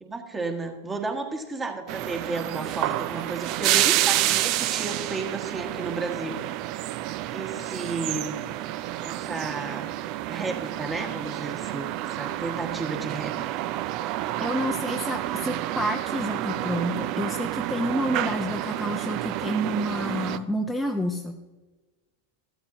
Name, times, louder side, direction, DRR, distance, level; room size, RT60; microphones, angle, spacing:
voice 1, 0.0-6.4 7.3-8.4 9.0-9.9 10.3-13.3, right 3 dB, 15° right, 4 dB, 1.5 m, -33 dB
sound 1, 1.9-20.4, right 14 dB, 40° right, 0.4 m, -29 dB
voice 2, 14.4-21.4, equal, 5° left, 2 dB, 0.7 m, -29 dB
13.5 x 13.0 x 2.7 m, 1.2 s
figure-of-eight pair, 90°, 0 cm